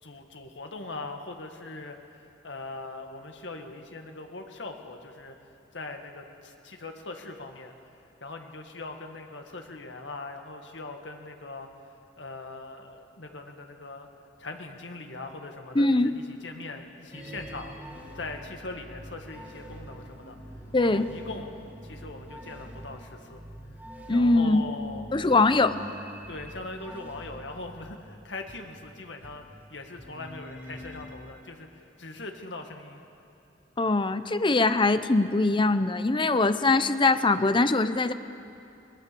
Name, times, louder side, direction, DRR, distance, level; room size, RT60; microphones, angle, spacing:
voice 1, 0.0-5.4 5.7-7.7 8.2-11.7 12.2-14.1 14.4-20.4 20.8-21.6 21.8-23.4 23.7-23.8 24.1-25.1 26.3-29.4 29.7-33.1, left 3 dB, 70° left, 4 dB, 1.8 m, -41 dB
voice 2, 15.7-16.1 20.7-21.1 24.1-24.6 25.1-25.8 33.8-38.1, left 3 dB, 25° left, 12 dB, 0.7 m, -22 dB
sound 1, 17.1-27.9 28.5-28.6 29.2-29.3 29.6-31.0, equal, 10° right, 3.4 m, -45 dB
sound 2, 17.2-23.0, right 1 dB, 45° left, 7.3 m, -54 dB
23.0 x 19.0 x 6.9 m, 2.7 s
head